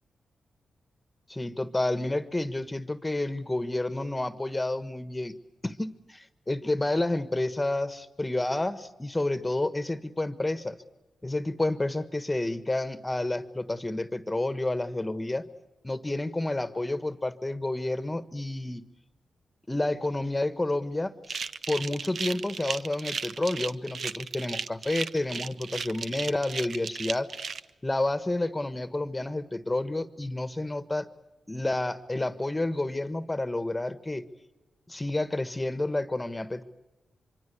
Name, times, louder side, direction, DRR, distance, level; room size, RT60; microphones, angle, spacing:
voice 1, 1.3-5.3 5.6-10.8 11.2-15.4 15.8-18.8 19.7-21.4 21.7-27.3 27.8-31.1 31.5-34.2 34.9-36.6, left 2 dB, 15° left, 12 dB, 1.4 m, -30 dB
sound 1, 21.2-27.6, right 5 dB, 70° right, 0.8 m, -35 dB
25.0 x 24.5 x 8.3 m, 1.0 s
cardioid pair, 70°, 0 cm